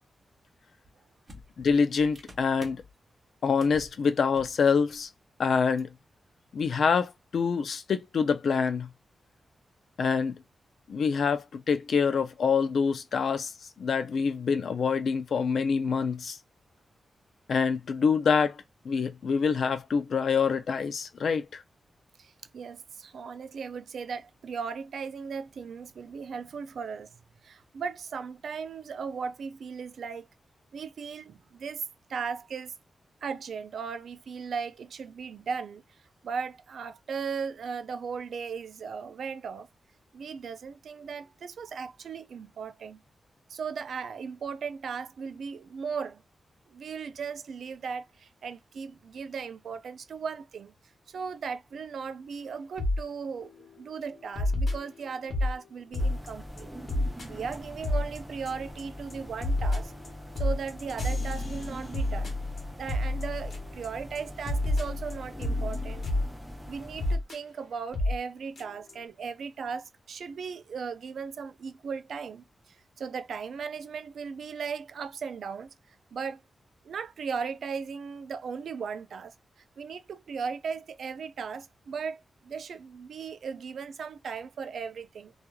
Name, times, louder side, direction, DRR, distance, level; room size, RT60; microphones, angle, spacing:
sound 1, 0.8-0.9 1.3-2.9 3.6-3.9 4.2-4.6 4.9-5.0 5.8-5.9, equal, 30° right, 0.9 m, -49 dB
voice 1, 1.6-2.8 3.4-5.1 5.4-5.9 6.5-8.9 10.0-10.3 10.9-13.5 13.8-16.4 17.5-18.6 18.9-21.6, left 5 dB, 65° left, 0.4 m, -26 dB
voice 2, 22.2-27.2 27.4-30.3 30.7-32.7 33.2-35.8 36.2-39.7 40.1-43.0 43.5-46.2 46.7-50.7 51.1-56.7 57.2-59.9 60.4-62.4 62.8-66.0 66.7-75.7 76.1-76.4 76.8-79.3 79.8-85.3, right 6 dB, 75° right, 0.3 m, -37 dB
sound 2, 52.8-53.0 53.4-53.7 54.4-55.5 55.9-56.3 56.6-56.7 56.9-57.3 57.5-57.6 57.8-58.2 58.5-58.8 59.1-63.9 64.2-64.3 64.5-66.3 67.0-67.4 67.9-68.2 68.6-68.7 68.9-69.0, left 1 dB, 50° left, 1.1 m, -29 dB
sound 3, 56.0-67.2, equal, 5° right, 0.6 m, -43 dB
3.0 x 2.3 x 2.3 m
wide cardioid pair, 140°, 0 cm